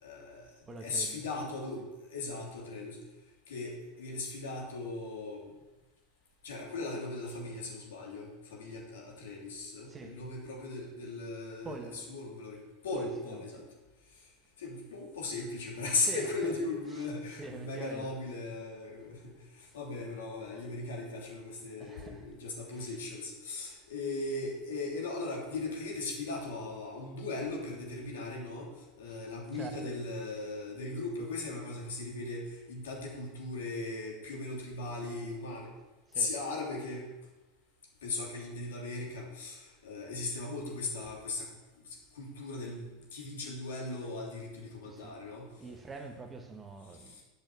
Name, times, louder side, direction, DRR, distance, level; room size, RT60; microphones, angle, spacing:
voice 1, 0.0-0.5 0.8-3.0 3.5-5.5 6.4-13.6 14.6-28.7 29.0-35.7 36.1-37.1 38.0-41.5 41.8-45.7 47.1-47.2, left 3 dB, 75° left, 3.0 m, -38 dB
voice 2, 0.6-1.2 9.9-10.2 11.6-12.1 12.9-13.6 16.0-16.5 16.9-17.1 17.4-18.2 19.3-19.4 19.6-19.8 21.8-22.3 22.7-23.0 23.6-23.8 29.1-29.2 29.5-30.1 36.1-36.3 44.8-45.1 45.6-47.2, right 3 dB, 20° right, 1.4 m, -45 dB
8.8 x 6.4 x 6.8 m
hypercardioid pair, 90°, 0 cm